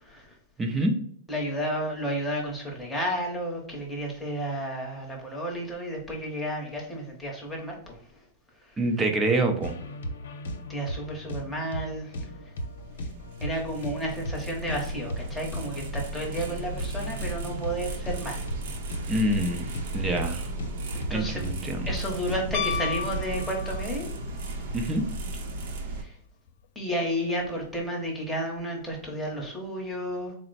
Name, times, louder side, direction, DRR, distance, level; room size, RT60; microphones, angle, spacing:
voice 1, 0.0-0.3 0.7-0.8 1.3-8.0 8.7-8.8 10.7-12.3 13.4-18.4 21.1-21.6 21.8-24.1 24.4-24.8 25.8-26.1 26.7-30.3, equal, 5° left, -2 dB, 0.9 m, -32 dB
voice 2, 0.6-1.0 8.8-9.8 19.1-19.7 19.9-20.5 21.1-21.8 24.7-25.1, right 1 dB, 10° right, 3 dB, 0.5 m, -26 dB
sound 1, 9.6-23.5, equal, 85° left, 0.8 m, -37 dB
sound 2, 12.6-26.0, right 2 dB, 60° right, 0.7 m, -36 dB
Piano, 22.5-24.1 26.5-26.6, left 8 dB, 55° left, 0.3 m, -32 dB
4.0 x 2.1 x 4.0 m, 0.66 s
supercardioid pair, 160°, 0 cm